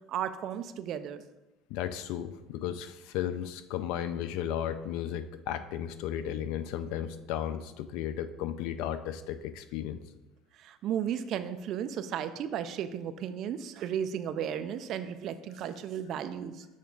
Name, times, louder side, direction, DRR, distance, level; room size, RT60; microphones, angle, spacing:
voice 1, 0.1-1.2 10.6-16.7, right 9 dB, 40° right, 11 dB, 0.3 m, -34 dB
voice 2, 1.7-10.0, left 10 dB, 60° left, 12 dB, 0.4 m, -34 dB
6.4 x 3.4 x 5.2 m, 1.0 s
cardioid pair, 180°, 0 cm